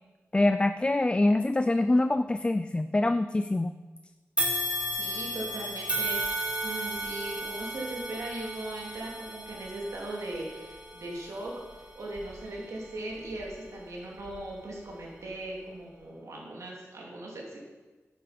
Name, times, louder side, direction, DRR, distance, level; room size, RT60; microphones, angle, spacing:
voice 1, 0.3-3.7, left 2 dB, 20° left, 10 dB, 0.3 m, -25 dB
sound 1, 4.4-13.7 14.2-14.4 15.3-15.4, equal, 20° right, 2.0 m, -35 dB
voice 2, 4.9-17.6, right 1 dB, 90° right, -3 dB, 3.0 m, -39 dB
9.8 x 9.7 x 5.2 m, 1.3 s
wide cardioid pair, 90°, 5 cm